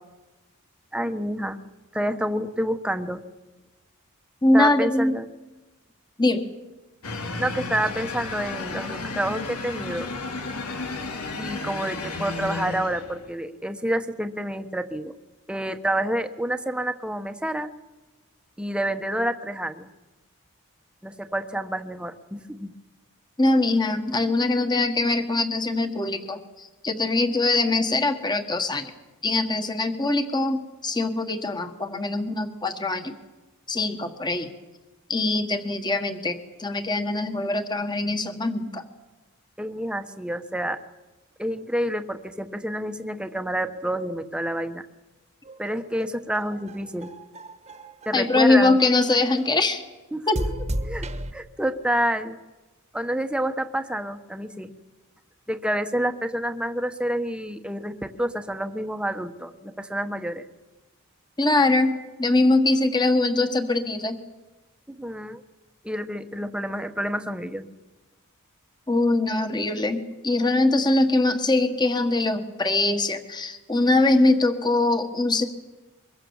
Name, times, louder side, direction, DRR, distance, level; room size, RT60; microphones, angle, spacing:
voice 1, 0.9-1.6 1.9-3.2 4.5-5.3 7.4-10.1 11.4-15.1 15.5-17.7 18.6-19.9 21.0-22.7 39.6-40.8 41.4-44.8 45.6-47.1 48.0-48.8 50.1-50.4 50.8-51.1 51.3-52.4 52.9-54.7 55.5-60.4 64.9-65.4 65.8-67.7, right 1 dB, 5° right, 8 dB, 1.2 m, -28 dB
voice 2, 4.4-5.2 6.2-6.5 23.4-28.9 29.2-33.1 33.7-34.5 35.1-38.8 48.1-49.8 50.3-50.4 61.4-64.2 68.9-75.5, left 2 dB, 20° left, 7 dB, 1.6 m, -22 dB
sound 1, 7.0-13.3, left 3 dB, 90° left, 2.6 m, -33 dB
sound 2, 45.4-48.5 49.0-49.6 50.3-51.3, right 1 dB, 30° right, 1.4 m, -34 dB
24.0 x 22.5 x 7.2 m, 1.1 s
head